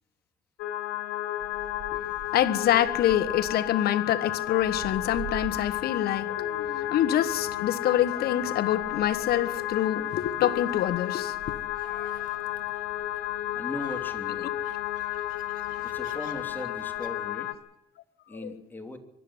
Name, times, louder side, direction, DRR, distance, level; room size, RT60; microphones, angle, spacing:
sound 1, 0.6-17.5, left 13 dB, 85° left, 2.4 m, -32 dB
Gull seagull, 1.4-17.1, right 8 dB, 55° right, 2.8 m, -48 dB
voice 1, 2.3-11.4 11.9-12.1 15.7-15.9 18.3-18.6, left 11 dB, 65° left, 1.5 m, -26 dB
voice 2, 13.5-14.5 15.8-17.5 18.3-19.0, left 2 dB, 10° left, 3.1 m, -38 dB
24.0 x 13.0 x 9.7 m
cardioid pair, 110°, 17 cm